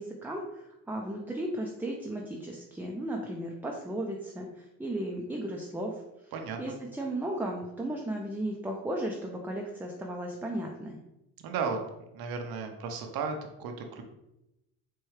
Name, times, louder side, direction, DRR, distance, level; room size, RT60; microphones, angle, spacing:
voice 1, 0.0-6.3 6.6-11.0, right 1 dB, 5° right, 0 dB, 0.4 m, -35 dB
voice 2, 6.3-6.8 11.4-11.8 12.1-14.0, right 5 dB, 70° right, 5 dB, 0.7 m, -34 dB
4.4 x 2.3 x 3.1 m, 0.90 s
cardioid pair, 95°, 37 cm